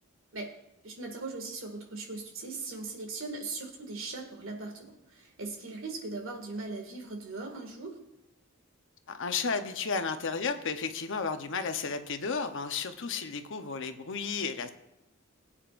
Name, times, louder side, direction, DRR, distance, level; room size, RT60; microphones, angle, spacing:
voice 1, 0.8-8.0, right 3 dB, 65° right, 2 dB, 2.2 m, -39 dB
voice 2, 9.1-14.7, left 5 dB, 65° left, 7 dB, 0.9 m, -33 dB
21.0 x 8.8 x 2.6 m, 0.91 s
head